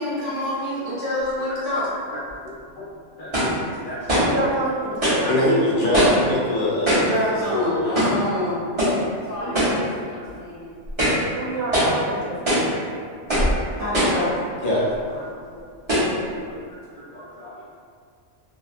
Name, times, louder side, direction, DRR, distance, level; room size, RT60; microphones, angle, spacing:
voice 1, 0.0-1.9 6.9-8.6 9.2-10.7 11.3-11.5 13.8-14.3, left 1 dB, 45° right, -13 dB, 1.3 m, -27 dB
sound 1, 2.3-2.4 3.3-3.6 4.1-4.4 5.0-5.3 5.9-6.3 6.9-7.2 8.0-8.2 8.8-9.0 9.5-9.8 10.3-10.4 10.9-11.3 11.7-12.0 12.5-12.7 13.3-13.6 13.9-14.3 15.0-15.1 15.9-16.2, equal, 25° right, 1.0 m, -21 dB
voice 2, 2.4-2.8 3.2-4.6 5.0-7.0 7.4-8.0 9.4-10.3 13.6-13.7 14.6-14.9 15.2-15.3 15.6-15.7 16.2-17.6, left 1 dB, 55° left, -6 dB, 0.6 m, -26 dB
voice 3, 4.2-5.2 9.4-9.6 11.3-12.5 15.1-15.2, right 2 dB, 65° right, -5 dB, 0.8 m, -28 dB
2.7 x 2.1 x 2.4 m, 2.1 s
omnidirectional pair, 1.3 m